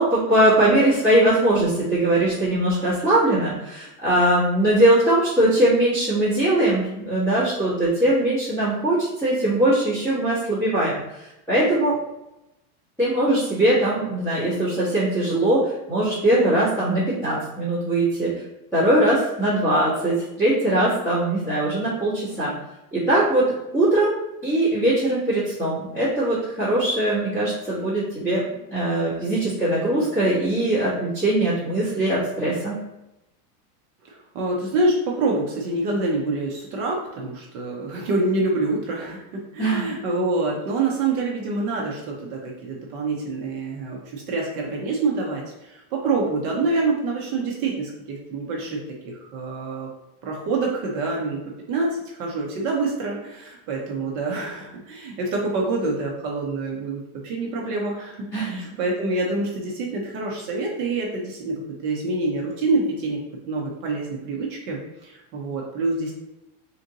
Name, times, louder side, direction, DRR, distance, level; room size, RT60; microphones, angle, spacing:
voice 1, 0.0-12.0 13.0-18.3 18.7-22.5 22.9-23.5 23.7-24.2 24.4-28.4 28.7-32.7 39.6-39.9 58.3-58.6, right 1 dB, 5° left, -14 dB, 1.4 m, -21 dB
voice 2, 34.1-49.9 50.2-51.4 51.7-63.2 63.5-66.1, right 3 dB, 25° right, -2 dB, 0.4 m, -26 dB
3.6 x 2.6 x 3.9 m, 0.90 s
supercardioid pair, 155°, 47 cm